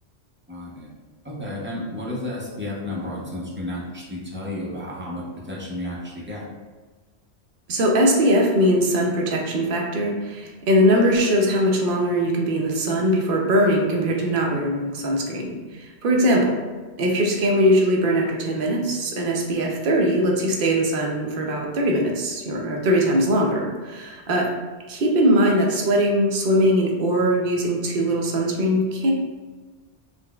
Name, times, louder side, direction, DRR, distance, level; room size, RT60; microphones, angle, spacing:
voice 1, 0.5-0.9 1.2-6.4, left 1 dB, 15° right, -6 dB, 0.4 m, -32 dB
voice 2, 7.7-16.6 17.0-24.5 24.9-29.1, equal, 60° right, 0 dB, 0.6 m, -21 dB
3.9 x 2.0 x 2.2 m, 1.3 s
omnidirectional pair, 1.2 m